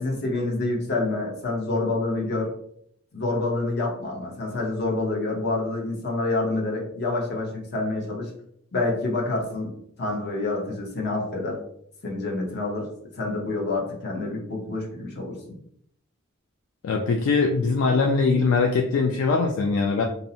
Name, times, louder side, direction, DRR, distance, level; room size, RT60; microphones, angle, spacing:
voice 1, 0.0-2.5 3.1-8.3 8.7-11.6 12.0-12.9 13.2-15.6, left 2 dB, 50° left, -1 dB, 0.7 m, -27 dB
voice 2, 16.8-20.0, left 4 dB, 65° left, 1 dB, 0.3 m, -22 dB
2.6 x 2.0 x 2.6 m, 0.68 s
head